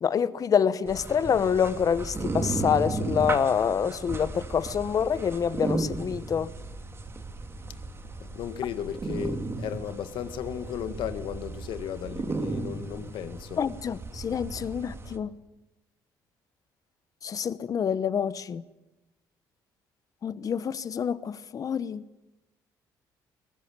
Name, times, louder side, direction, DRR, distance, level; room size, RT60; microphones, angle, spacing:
voice 1, 0.0-6.5 13.6-15.3 17.2-18.6 20.2-22.0, left 7 dB, 45° left, 1.0 m, -27 dB
sound 1, 0.9-15.2, right 3 dB, 30° right, 2.6 m, -35 dB
voice 2, 8.2-13.6, left 9 dB, 75° left, 1.9 m, -35 dB
22.5 x 19.0 x 9.1 m
cardioid pair, 95°, 8 cm